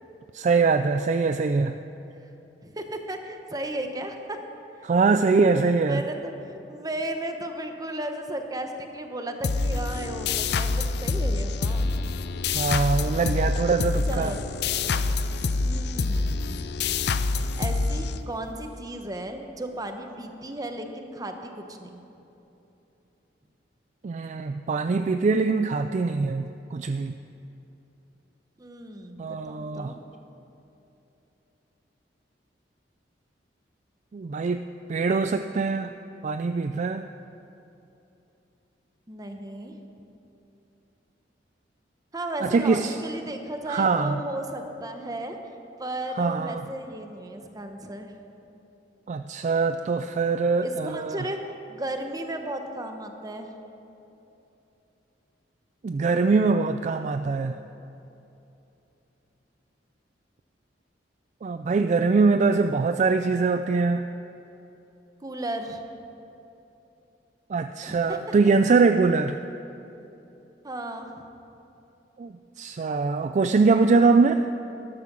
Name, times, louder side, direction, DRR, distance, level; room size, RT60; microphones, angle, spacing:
voice 1, 0.3-1.7 4.8-6.0 12.5-14.3 24.0-27.1 29.2-29.9 34.1-35.9 36.2-37.0 42.4-42.9 43.7-44.2 46.2-46.6 49.1-51.2 55.8-57.6 61.4-64.1 67.5-69.4 72.2-74.5, right 4 dB, 40° right, 9 dB, 0.3 m, -23 dB
voice 2, 2.6-4.4 5.8-11.8 14.0-14.4 15.6-16.6 17.6-22.0 28.6-30.0 39.1-39.8 42.1-45.4 45.8-48.1 50.6-51.4 51.7-53.5 65.2-65.8 67.9-68.3 70.6-71.2, right 1 dB, 20° right, 5 dB, 1.0 m, -35 dB
sound 1, 9.4-18.7, left 3 dB, 65° left, 0.5 m, -26 dB
13.5 x 12.0 x 6.1 m, 3.0 s
head